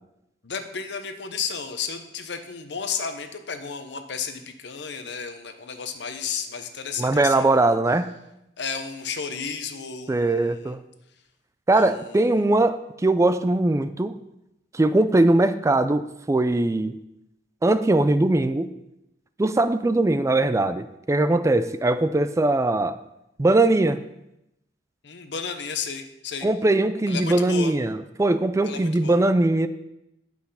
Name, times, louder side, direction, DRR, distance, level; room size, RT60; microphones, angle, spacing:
voice 1, 0.4-7.8 8.6-10.7 11.7-12.4 25.0-26.5 27.1-27.7 28.6-29.2, left 6 dB, 65° left, 8 dB, 0.9 m, -33 dB
voice 2, 7.0-8.1 10.1-10.8 11.7-14.2 14.7-17.0 17.6-18.7 19.4-23.0 23.4-24.0 26.4-29.7, right 2 dB, 15° right, 11 dB, 0.3 m, -21 dB
8.8 x 5.9 x 5.6 m, 0.86 s
head